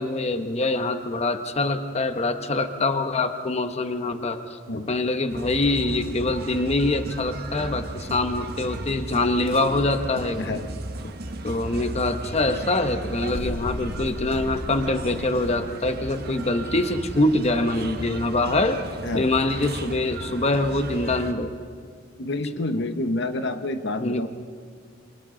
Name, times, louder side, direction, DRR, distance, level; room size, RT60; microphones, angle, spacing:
voice 1, 0.0-4.6 4.9-10.5 11.4-18.8 19.1-21.5 22.5-22.6 24.0-24.3, left 2 dB, 35° left, 7 dB, 1.0 m, -24 dB
sound 1, 5.3-21.3, right 1 dB, 55° right, 1.4 m, -35 dB
voice 2, 10.4-10.7 11.0-11.1 19.0-19.3 22.2-24.3, left 2 dB, 60° left, 8 dB, 1.0 m, -28 dB
sound 2, 13.3-16.1, left 1 dB, 80° left, 1.1 m, -36 dB
28.5 x 26.0 x 3.9 m, 2.1 s
head